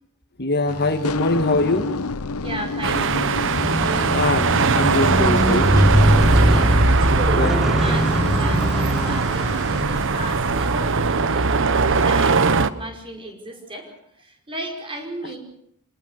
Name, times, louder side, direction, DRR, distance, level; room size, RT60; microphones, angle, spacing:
voice 1, 0.4-1.9 4.1-5.8 7.4-7.5, left 2 dB, 50° left, 6 dB, 1.8 m, -22 dB
sound 1, 0.7-10.1, left 3 dB, 80° left, 0.9 m, -31 dB
voice 2, 2.4-3.3 3.8-4.3 6.4-15.4, right 1 dB, 25° right, 3 dB, 5.3 m, -34 dB
sound 2, 2.8-12.7, right 4 dB, 60° right, 1.0 m, -20 dB
Squeak, 3.5-9.9 10.7-10.8, equal, ahead, 1.0 m, -22 dB
27.5 x 19.0 x 6.6 m, 0.70 s
head